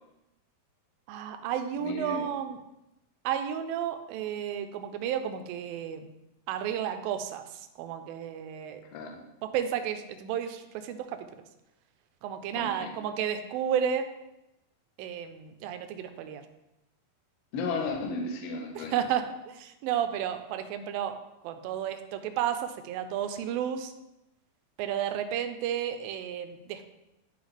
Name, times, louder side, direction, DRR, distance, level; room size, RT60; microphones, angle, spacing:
voice 1, 1.1-2.6 3.2-6.1 6.5-8.8 9.4-11.3 12.2-14.1 15.0-16.4 18.8-21.2 21.4-23.9 24.8-26.9, right 9 dB, 80° right, 8 dB, 2.3 m, -32 dB
voice 2, 1.7-2.3 8.9-9.2 12.5-12.9 17.5-18.9, left 3 dB, 75° left, 1 dB, 1.4 m, -34 dB
11.0 x 4.0 x 3.3 m, 0.90 s
omnidirectional pair, 4.3 m